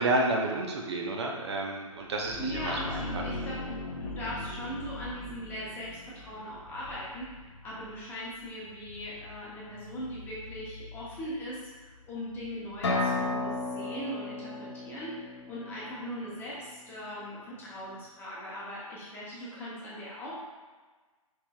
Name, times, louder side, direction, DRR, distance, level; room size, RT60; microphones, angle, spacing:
voice 1, 0.0-2.8, right 2 dB, 50° right, 0 dB, 0.6 m, -30 dB
sound 1, 2.0-13.6, left 2 dB, 85° left, 0.6 m, -42 dB
voice 2, 2.4-20.4, equal, 10° left, -7 dB, 0.9 m, -40 dB
sound 2, 12.8-16.6, left 2 dB, 50° left, 1.0 m, -33 dB
4.9 x 4.0 x 2.3 m, 1.3 s
figure-of-eight pair, 130°, 18 cm